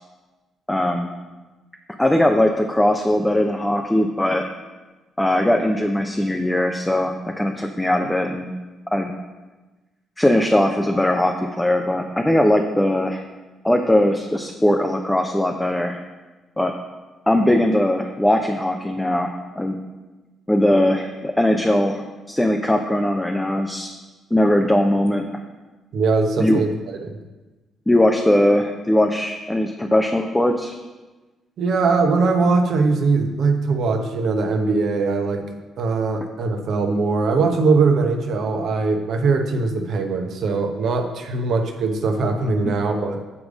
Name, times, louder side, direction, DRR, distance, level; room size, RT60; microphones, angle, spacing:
voice 1, 0.7-1.1 2.0-4.4 5.2-8.5 8.9-9.1 10.2-13.2 13.6-16.0 16.6-16.7 17.3-19.8 20.5-23.9 24.3-25.2 26.4-26.6 27.9-30.7, left 1 dB, 10° left, 3 dB, 0.8 m, -20 dB
voice 2, 25.9-26.7 27.0-27.1 31.6-35.4 35.8-43.2, right 4 dB, 55° right, 4 dB, 1.0 m, -21 dB
8.4 x 4.7 x 5.0 m, 1.2 s
figure-of-eight pair, 40°, 0 cm